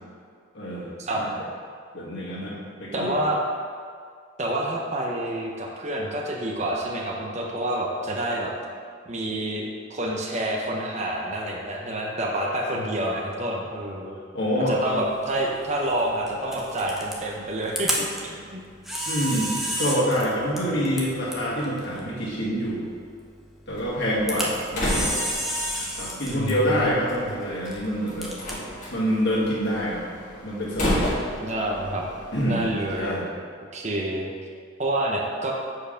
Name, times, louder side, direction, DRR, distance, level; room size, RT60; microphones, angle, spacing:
voice 1, 0.5-0.9 1.2-1.3 1.9-3.1 14.3-15.1 19.1-22.9 23.7-25.2 26.0-28.3 28.9-30.1 30.4-31.2 32.3-32.6 33.0-33.3, equal, 55° left, -6 dB, 1.9 m, -26 dB
voice 2, 2.9-3.4 4.4-8.5 9.1-14.2 14.7-18.6 20.5-21.1 26.3-27.3 31.4-32.0 32.4-33.1 33.7-34.3 34.8-35.5, right 1 dB, 35° right, -2 dB, 0.9 m, -28 dB
Camera, 14.7-30.1, equal, ahead, 0.8 m, -34 dB
Slam, 23.7-33.1, equal, 40° left, 1.6 m, -33 dB
7.8 x 4.7 x 5.2 m, 2.1 s
head